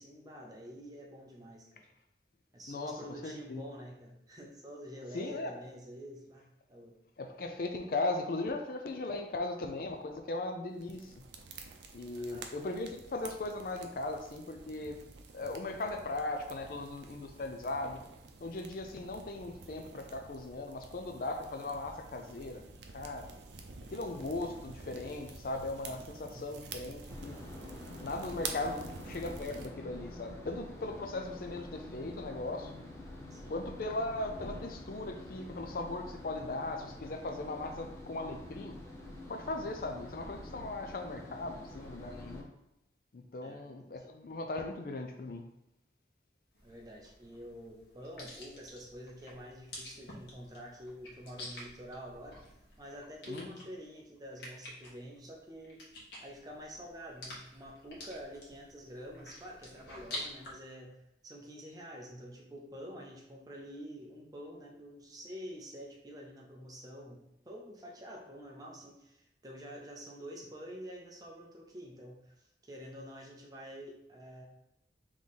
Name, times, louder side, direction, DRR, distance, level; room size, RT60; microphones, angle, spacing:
voice 1, 0.0-1.9 2.5-6.9 12.2-12.4 26.3-26.5 28.7-28.9 33.3-33.5 43.4-43.9 46.6-52.4 52.8-55.8 56.2-60.9 61.2-74.4, equal, 20° right, -1 dB, 0.7 m, -48 dB
voice 2, 2.7-3.6 5.1-5.5 7.2-11.1 11.9-15.0 15.3-18.0 18.4-22.6 22.9-23.3 23.9-27.4 28.0-32.7 33.5-38.8 39.3-42.5 43.1-45.4 53.3-53.6, left 2 dB, 55° left, 5 dB, 0.4 m, -38 dB
sound 1, 10.8-29.7, right 4 dB, 85° right, 0.5 m, -49 dB
sound 2, 27.1-42.4, left 1 dB, 15° left, 0.7 m, -47 dB
sound 3, 46.5-60.5, left 1 dB, 85° left, 1.3 m, -49 dB
3.7 x 3.2 x 4.0 m, 0.83 s
head